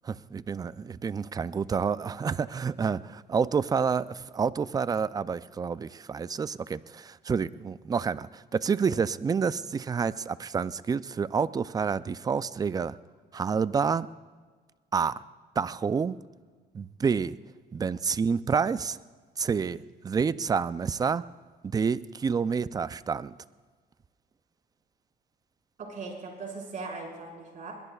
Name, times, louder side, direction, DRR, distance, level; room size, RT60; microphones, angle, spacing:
voice 1, 0.0-13.0 13.3-14.1 14.9-15.1 15.6-16.2 16.7-17.4 17.7-19.0 19.4-21.2 21.6-23.3, right 6 dB, 20° right, 16 dB, 0.4 m, -28 dB
voice 2, 25.8-27.7, right 4 dB, 50° right, -1 dB, 5.2 m, -39 dB
22.0 x 21.0 x 2.4 m, 1.5 s
cardioid pair, 110°, 17 cm